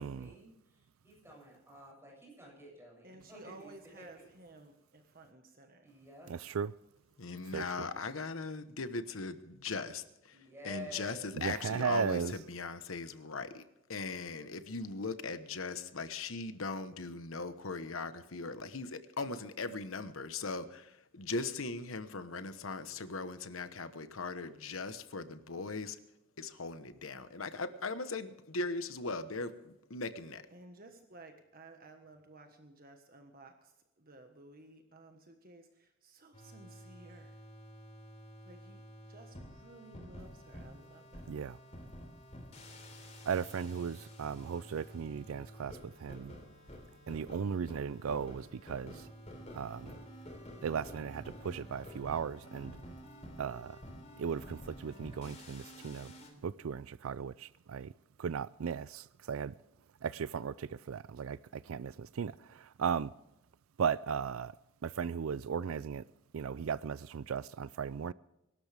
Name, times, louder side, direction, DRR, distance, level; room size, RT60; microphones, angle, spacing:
voice 1, 0.0-4.0 5.8-6.3 10.3-11.2, equal, 10° right, 7.4 m, -51 dB
voice 2, 3.0-5.9 30.5-37.4 38.4-38.8 39.1-41.3, right 2 dB, 45° right, 1.4 m, -55 dB
voice 3, 6.3-6.7 7.5-7.6 11.4-12.3 41.3-41.6 43.3-46.3 47.1-49.1 49.5-50.0 50.6-52.8 53.4-53.8 54.2-56.1 56.4-57.9 58.2-59.5 60.0-63.1 63.8-64.5 64.8-66.0 66.3-68.1, right 6 dB, 80° right, 0.4 m, -36 dB
voice 4, 7.2-13.6 13.9-26.0 26.4-30.4, left 3 dB, 80° left, 1.1 m, -39 dB
sound 1, 36.3-56.3, equal, 35° left, 3.4 m, -50 dB
23.5 x 12.5 x 3.5 m
head